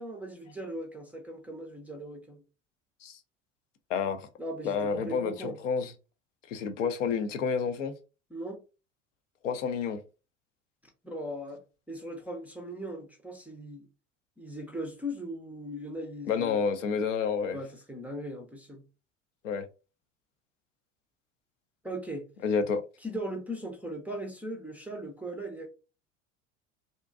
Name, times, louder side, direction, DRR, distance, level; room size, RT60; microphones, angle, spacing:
voice 1, 0.0-2.4 4.4-5.6 8.3-8.6 11.0-13.9 14.4-16.6 17.5-18.8 21.8-22.3 23.0-25.7, equal, 5° right, 0.4 m, -39 dB
voice 2, 3.9-4.3 4.6-5.9 6.5-8.0 9.4-10.0 16.3-17.6 19.4-19.6 22.4-22.8, left 6 dB, 70° left, 0.5 m, -29 dB
2.6 x 2.1 x 2.4 m
figure-of-eight pair, 70°, 38 cm